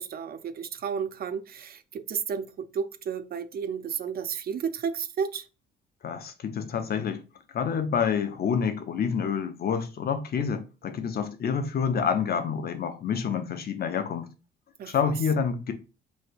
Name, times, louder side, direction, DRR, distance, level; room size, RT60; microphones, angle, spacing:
voice 1, 0.0-5.5 14.8-15.1, right 7 dB, 50° right, 0.4 m, -32 dB
voice 2, 6.0-7.2 7.5-14.3 14.9-15.7, left 6 dB, 50° left, 0.6 m, -28 dB
3.3 x 2.6 x 2.4 m
cardioid pair, 90°, 20 cm